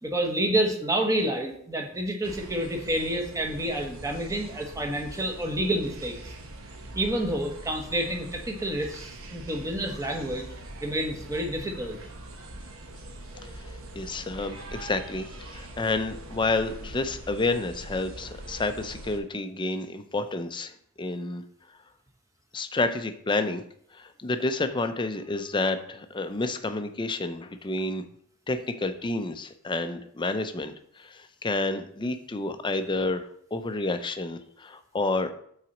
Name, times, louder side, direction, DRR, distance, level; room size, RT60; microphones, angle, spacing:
voice 1, 0.0-6.3 6.9-10.5 10.8-12.0, right 1 dB, 15° right, 2 dB, 1.1 m, -29 dB
sound 1, 2.2-19.2, right 1 dB, 75° right, 1.0 m, -43 dB
voice 2, 13.9-20.7 21.0-21.4 22.5-23.6 23.9-28.1 28.5-33.2 33.5-35.3, left 2 dB, 25° left, 8 dB, 0.5 m, -29 dB
5.9 x 4.1 x 5.9 m, 0.65 s
head